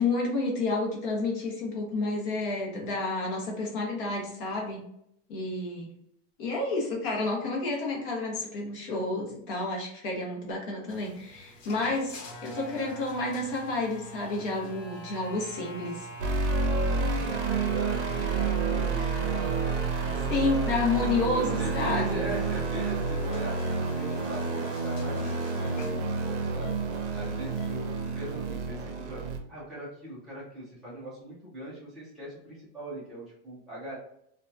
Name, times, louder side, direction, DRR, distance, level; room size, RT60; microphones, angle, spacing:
voice 1, 0.0-4.9 5.3-5.9 6.4-16.1 20.3-22.2, left 3 dB, 45° left, -1 dB, 0.8 m, -30 dB
sound 1, 10.9-28.4, left 1 dB, 85° left, 0.9 m, -44 dB
sound 2, 16.2-29.4, right 4 dB, 65° right, 0.6 m, -29 dB
voice 2, 16.8-20.3 21.3-26.7 27.1-29.2 29.5-34.0, right 1 dB, ahead, -11 dB, 0.4 m, -41 dB
2.7 x 2.2 x 2.4 m, 0.74 s
supercardioid pair, 175°, 37 cm